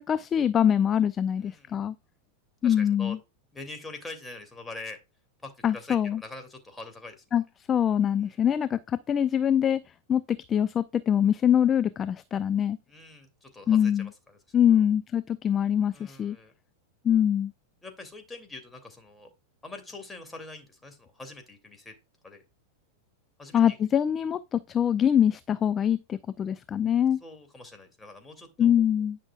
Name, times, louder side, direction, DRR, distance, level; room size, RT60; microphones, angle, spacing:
voice 1, 0.0-1.9 2.6-3.2 5.6-6.2 7.3-12.8 13.7-14.1 14.5-16.4 17.0-17.5 23.5-27.2 28.6-29.2, left 9 dB, 30° left, 0.4 m, -24 dB
voice 2, 2.6-3.2 3.5-5.0 5.4-7.1 12.9-14.4 15.9-16.5 17.8-19.3 19.6-21.9 22.2-22.4 23.4-23.8 27.2-28.7, left 3 dB, 10° left, 2.7 m, -44 dB
10.5 x 6.0 x 2.4 m
hypercardioid pair, 110°, 0 cm